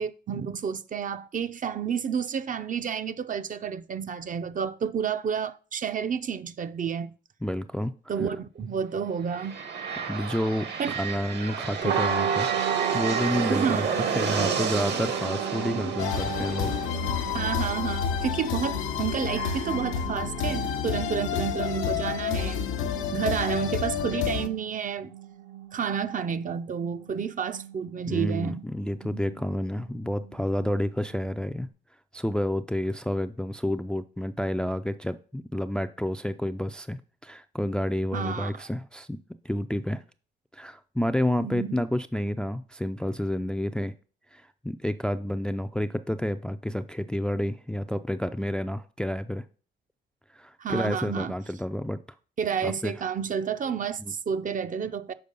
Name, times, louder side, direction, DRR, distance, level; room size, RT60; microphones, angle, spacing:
voice 1, 0.0-7.1 8.1-9.6 10.8-10.9 13.5-14.1 15.7-15.9 17.3-22.7 23.1-25.1 25.7-28.6 38.1-38.5 41.4-41.8 50.6-51.3 52.4-55.1, right 7 dB, 40° right, 0.6 m, -30 dB
voice 2, 7.4-7.9 10.0-12.5 12.9-13.9 14.1-16.7 28.0-31.7 32.1-39.2 39.4-40.0 40.5-43.9 44.3-49.4 50.3-52.0 52.6-53.1 54.0-54.1, left 1 dB, 5° left, 0.4 m, -29 dB
sound 1, 9.2-19.0, right 6 dB, 60° right, 1.2 m, -32 dB
sound 2, 11.8-31.6, right 7 dB, 75° right, 1.3 m, -35 dB
sound 3, 16.0-24.5, left 8 dB, 90° left, 0.8 m, -29 dB
6.7 x 4.7 x 5.3 m
cardioid pair, 90°, 20 cm